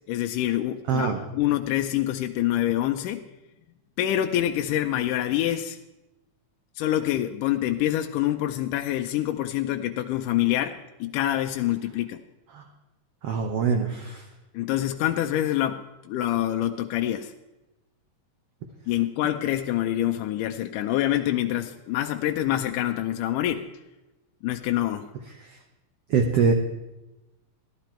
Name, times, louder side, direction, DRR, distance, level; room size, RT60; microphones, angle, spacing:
voice 1, 0.1-3.2 4.0-5.8 6.8-12.2 14.5-17.3 18.9-23.7 24.4-25.1, left 13 dB, 80° left, 5 dB, 2.1 m, -26 dB
voice 2, 0.9-1.2 12.5-12.6 13.2-14.2 25.4-25.6 26.1-26.5, right 5 dB, 70° right, 4 dB, 1.5 m, -23 dB
14.5 x 12.0 x 4.5 m, 1.0 s
omnidirectional pair, 3.9 m